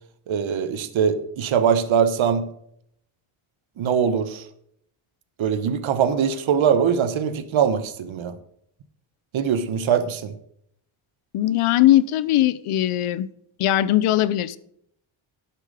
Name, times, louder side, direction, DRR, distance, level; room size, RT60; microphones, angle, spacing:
voice 1, 0.3-2.5 3.8-4.4 5.4-8.3 9.3-10.3, right 7 dB, 70° right, 11 dB, 1.3 m, -22 dB
voice 2, 11.3-13.3 13.6-14.6, left 13 dB, 80° left, 16 dB, 0.9 m, -20 dB
11.5 x 8.2 x 5.1 m, 0.70 s
cardioid pair, 115°, 49 cm